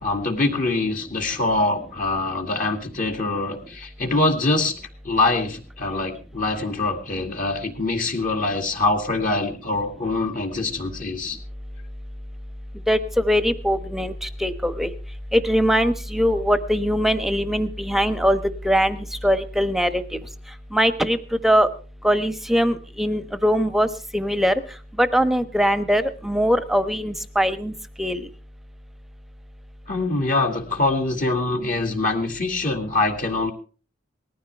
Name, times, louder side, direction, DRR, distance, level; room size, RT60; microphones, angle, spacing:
voice 1, 0.0-4.7 5.0-11.4 29.9-33.5, left 2 dB, 45° left, 3 dB, 2.3 m, -24 dB
voice 2, 12.9-14.1 14.4-14.9 15.3-18.4 18.6-19.0 19.2-20.0 20.7-21.2 21.4-21.7 22.0-23.9 24.1-24.5 25.0-27.7 28.0-28.2, equal, ahead, 11 dB, 1.1 m, -21 dB
19.5 x 14.0 x 3.4 m, 0.38 s
head